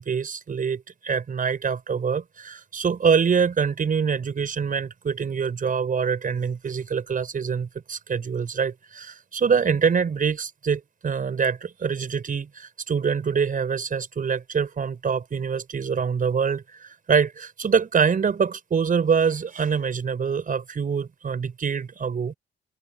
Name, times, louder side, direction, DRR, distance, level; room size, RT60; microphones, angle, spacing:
voice 1, 0.0-22.3, right 6 dB, 45° right, 5.2 m, -25 dB
cardioid pair, 90°, 20 cm